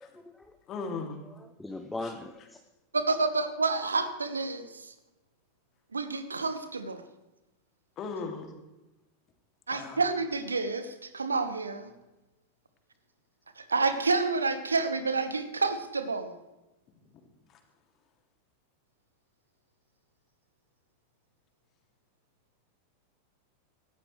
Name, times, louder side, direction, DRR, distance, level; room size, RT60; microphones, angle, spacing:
voice 1, 0.0-0.6 1.0-2.6, left 2 dB, 5° left, 0.9 m, -41 dB
voice 2, 0.7-1.2 8.0-8.5 9.7-10.0, left 4 dB, 30° left, 2.4 m, -36 dB
voice 3, 2.9-4.9 5.9-7.0 9.7-11.9 13.6-16.3, right 3 dB, 75° right, 1.2 m, -29 dB
18.5 x 15.0 x 3.2 m
figure-of-eight pair, 90°, 0 cm